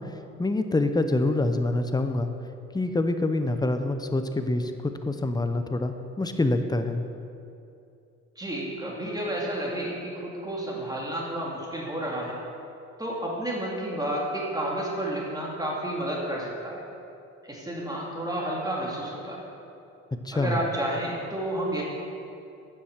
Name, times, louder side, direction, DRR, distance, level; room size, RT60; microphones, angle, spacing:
voice 1, 0.0-2.3 2.7-7.0 20.2-20.6, left 2 dB, 15° left, 8 dB, 0.7 m, -26 dB
voice 2, 8.4-12.4 13.0-16.8 17.4-19.4 20.3-21.8, right 1 dB, 10° right, -3 dB, 2.2 m, -31 dB
9.0 x 7.1 x 6.5 m, 2.6 s
cardioid pair, 90°, 30 cm